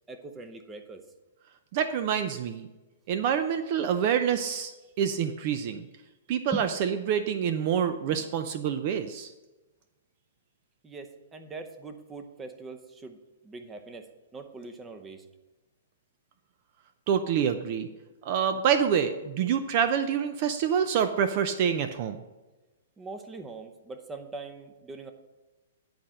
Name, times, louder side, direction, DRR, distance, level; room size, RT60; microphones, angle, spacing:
voice 1, 0.1-1.0 6.5-6.7 10.8-13.2 13.4-14.1 14.3-15.3 23.0-25.1, right 3 dB, 15° right, 7 dB, 0.8 m, -41 dB
voice 2, 1.7-2.7 3.1-5.9 6.3-9.3 17.1-17.9 18.2-22.2, right 8 dB, 45° right, 9 dB, 0.5 m, -27 dB
10.5 x 4.3 x 6.3 m, 1.1 s
hypercardioid pair, 145°, 0 cm